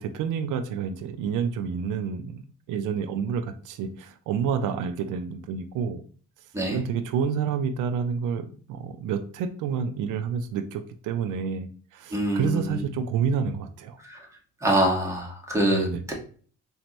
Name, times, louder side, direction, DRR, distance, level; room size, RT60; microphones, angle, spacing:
voice 1, 0.0-6.0 6.7-14.0 15.7-16.0, right 6 dB, 85° right, 9 dB, 0.5 m, -29 dB
voice 2, 12.1-12.8 14.1-14.2 14.6-16.1, right 1 dB, 10° right, -2 dB, 1.6 m, -25 dB
4.3 x 2.8 x 3.0 m, 0.44 s
cardioid pair, 90°, 30 cm